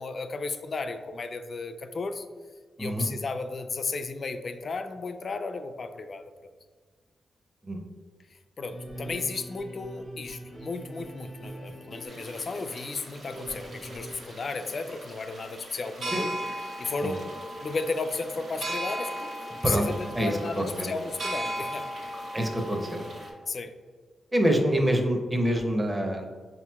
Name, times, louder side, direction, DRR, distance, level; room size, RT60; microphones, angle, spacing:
voice 1, 0.0-2.3 2.8-6.3 8.6-16.4 16.8-17.3 17.6-19.3 19.6-21.9 23.5-23.7, left 3 dB, 55° left, 8 dB, 0.3 m, -34 dB
sound 1, 8.7-14.2, right 1 dB, 55° right, 0.8 m, -43 dB
sound 2, 12.1-23.3, right 1 dB, 75° right, 1.0 m, -38 dB
voice 2, 20.2-20.9 22.3-23.0 24.3-26.3, equal, 15° right, 3 dB, 0.6 m, -26 dB
5.4 x 2.8 x 2.2 m, 1.5 s
cardioid pair, 85°, 0 cm